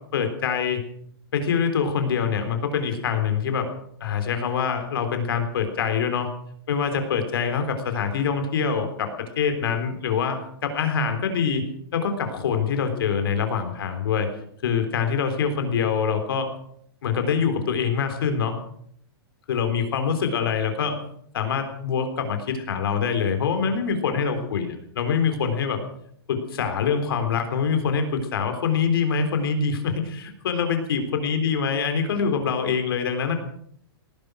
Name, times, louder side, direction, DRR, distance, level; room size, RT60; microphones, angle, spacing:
voice 1, 0.1-0.8 1.3-3.7 4.0-6.3 6.7-9.1 9.4-11.7 11.9-14.3 14.6-16.5 17.0-18.6 19.5-21.0 21.3-25.8 26.3-33.4, left 6 dB, 65° left, 7 dB, 3.7 m, -24 dB
18.0 x 11.5 x 6.4 m, 0.68 s
hypercardioid pair, 170°, 13 cm